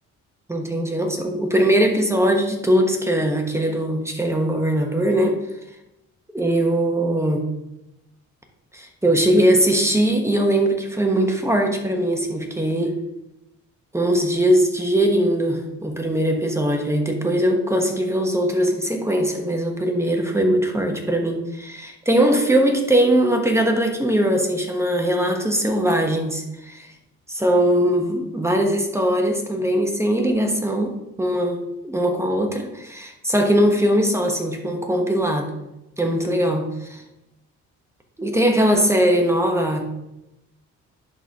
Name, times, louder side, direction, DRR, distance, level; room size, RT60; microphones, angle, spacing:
voice 1, 0.5-5.4 6.3-7.5 8.7-13.0 13.9-26.9 27.3-30.9 31.2-35.5 36.0-37.0 38.2-39.8, right 1 dB, 10° right, 3 dB, 1.1 m, -20 dB
11.0 x 4.0 x 2.9 m, 0.92 s
cardioid pair, 90°, 30 cm